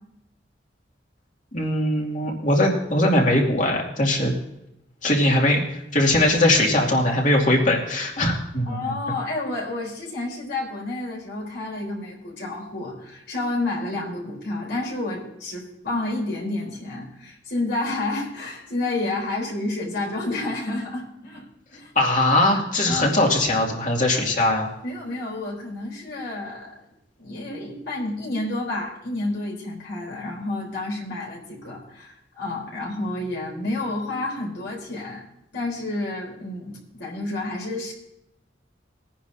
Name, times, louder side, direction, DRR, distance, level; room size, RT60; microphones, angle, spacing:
voice 1, 1.5-4.3 5.0-8.8 22.0-24.7, left 1 dB, 45° left, -1 dB, 2.4 m, -20 dB
voice 2, 8.7-21.4 21.7-21.9 22.9-23.1 24.8-26.8 27.2-35.2 35.5-37.9, left 2 dB, 65° left, -3 dB, 4.0 m, -30 dB
21.0 x 10.0 x 2.8 m, 0.84 s
head